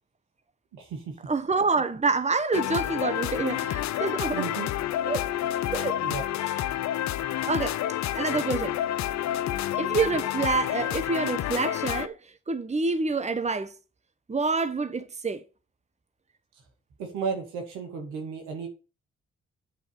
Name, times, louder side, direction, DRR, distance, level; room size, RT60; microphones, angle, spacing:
voice 1, 0.7-1.2 4.3-4.7 6.0-6.2 8.3-8.4 17.0-18.7, right 5 dB, 85° right, 2.1 m, -34 dB
voice 2, 1.3-4.4 5.0-5.3 5.7-6.0 6.4-6.6 7.5-7.8 8.1-8.7 9.8-12.2 12.5-13.7 14.3-15.4, right 4 dB, 25° right, 1.1 m, -27 dB
sound 1, 2.5-12.1, left 12 dB, 65° left, 0.6 m, -29 dB
8.3 x 4.6 x 6.5 m
hypercardioid pair, 45°, 30 cm